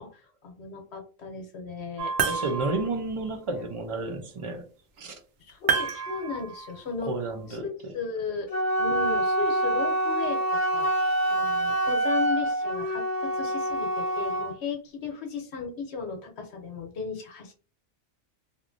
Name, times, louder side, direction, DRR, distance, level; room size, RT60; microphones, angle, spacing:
voice 1, 0.0-2.1 5.5-7.1 7.5-7.7 7.9-8.5 8.8-10.4 10.7-10.9 11.3-17.5, left 5 dB, 65° left, 1.0 m, -35 dB
sound 1, 2.0-3.0 5.7-6.8, right 6 dB, 65° right, 0.8 m, -29 dB
voice 2, 2.2-4.6 5.0-5.2 7.0-7.9, right 3 dB, 45° right, 0.4 m, -31 dB
Wind instrument woodwind instrument, 8.5-14.6, right 1 dB, 50° left, 0.4 m, -26 dB
3.0 x 2.4 x 2.5 m
omnidirectional pair, 1.2 m